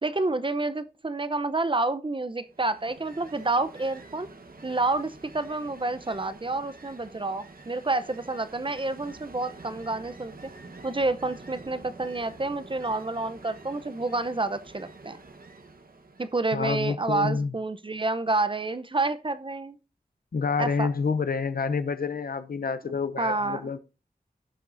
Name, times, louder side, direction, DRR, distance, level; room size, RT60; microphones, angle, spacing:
voice 1, 0.0-4.3 4.6-10.5 10.8-15.2 16.2-19.8 20.6-20.9 22.8-23.7, right 2 dB, 35° right, 0.7 m, -29 dB
Ocean, 2.5-16.6, right 3 dB, 70° right, 1.2 m, -47 dB
voice 2, 16.5-17.5 20.3-23.8, left 5 dB, 70° left, 0.6 m, -28 dB
16.5 x 5.8 x 2.6 m
wide cardioid pair, 65°, 16 cm